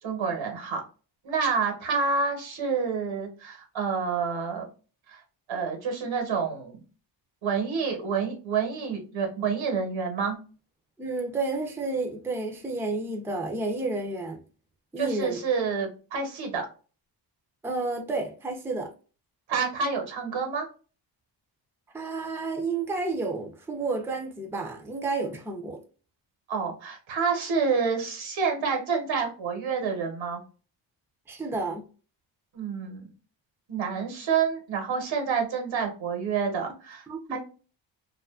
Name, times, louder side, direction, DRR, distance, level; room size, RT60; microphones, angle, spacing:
voice 1, 0.0-0.8 1.2-4.7 5.1-5.2 5.5-6.8 7.4-10.4 15.0-16.7 19.5-20.7 26.5-30.4 32.5-33.1 33.7-37.0 37.3-37.4, right 5 dB, 85° right, 1.1 m, -28 dB
voice 2, 11.0-14.4 14.9-15.4 17.6-18.9 21.9-25.8 31.3-31.9 37.1-37.4, right 3 dB, 5° right, 0.4 m, -31 dB
2.6 x 2.4 x 2.3 m
wide cardioid pair, 120°, 45 cm